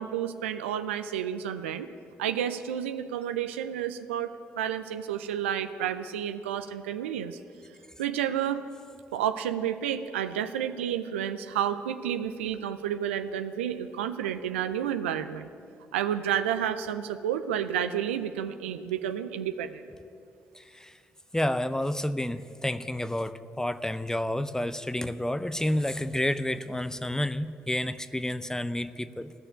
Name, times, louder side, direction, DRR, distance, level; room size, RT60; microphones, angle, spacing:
voice 1, 0.0-1.9 2.2-7.4 8.0-8.6 9.1-15.5 15.9-19.8, right 9 dB, 85° right, 10 dB, 0.5 m, -30 dB
voice 2, 20.5-21.0 21.3-29.3, left 1 dB, 10° left, 13 dB, 0.7 m, -30 dB
15.5 x 6.6 x 9.9 m, 2.4 s
hypercardioid pair, 40°, 6 cm